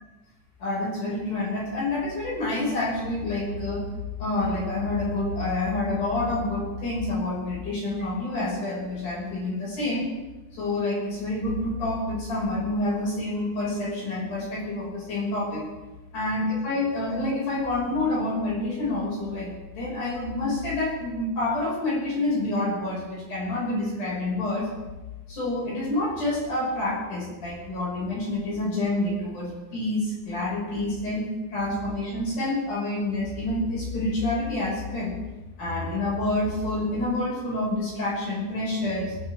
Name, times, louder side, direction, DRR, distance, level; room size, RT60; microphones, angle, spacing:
voice 1, 0.6-3.8 4.2-10.0 10.5-15.7 16.1-24.7 25.3-35.1 35.6-39.2, left 2 dB, 40° left, -6 dB, 7.5 m, -28 dB
23.0 x 15.5 x 3.7 m, 1.2 s
omnidirectional pair, 5.4 m